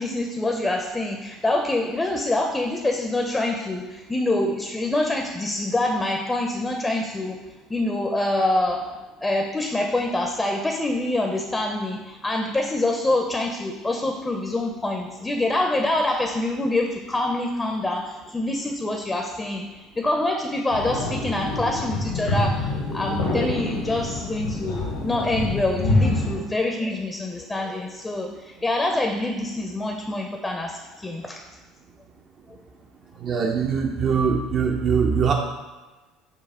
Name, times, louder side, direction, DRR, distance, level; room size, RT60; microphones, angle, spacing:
voice 1, 0.0-7.4 7.7-19.7 20.0-31.4, left 2 dB, 20° left, 2 dB, 0.5 m, -26 dB
sound 1, 20.7-26.4, left 2 dB, 75° left, 1.0 m, -26 dB
voice 2, 33.2-35.3, right 6 dB, 50° right, 1 dB, 0.4 m, -22 dB
5.5 x 2.0 x 3.5 m, 1.2 s
hypercardioid pair, 65°, 0 cm